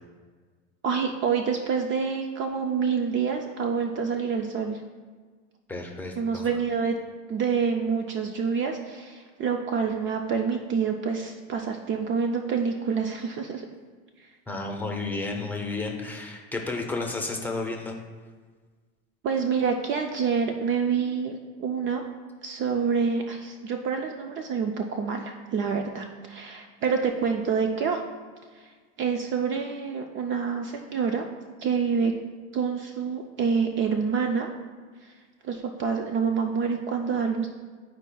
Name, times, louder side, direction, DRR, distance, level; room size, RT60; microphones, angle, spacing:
voice 1, 0.8-4.8 6.2-7.0 7.3-13.7 14.2-14.3 19.2-22.1 22.4-28.0 28.5-28.7 29.0-31.3 31.6-32.1 32.5-34.5 35.0-35.1 35.4-37.5, right 6 dB, 40° right, 4 dB, 0.4 m, -27 dB
voice 2, 5.7-6.5 14.5-18.0, left 3 dB, 5° left, 0 dB, 0.8 m, -32 dB
10.5 x 4.6 x 2.3 m, 1.5 s
supercardioid pair, 120°, 31 cm